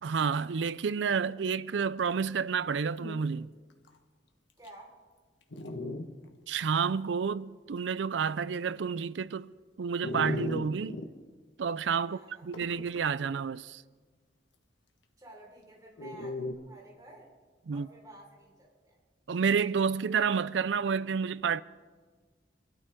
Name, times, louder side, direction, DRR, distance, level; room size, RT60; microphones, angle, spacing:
voice 1, 0.0-3.5 6.5-9.5 9.8-11.0 11.6-13.8 17.7-17.9 19.3-21.6, right 6 dB, 75° right, 0.5 m, -30 dB
Dog, 2.5-2.6 2.9-3.2 3.9-4.0 4.6-4.7 5.5-6.1 6.6-6.7 10.0-11.1 12.5-13.1 16.0-16.5, left 1 dB, 85° left, 1.4 m, -36 dB
voice 2, 4.6-5.0 12.0-12.5 15.2-17.3 17.7-19.0, right 1 dB, 20° right, 4.6 m, -52 dB
25.5 x 13.0 x 3.7 m
head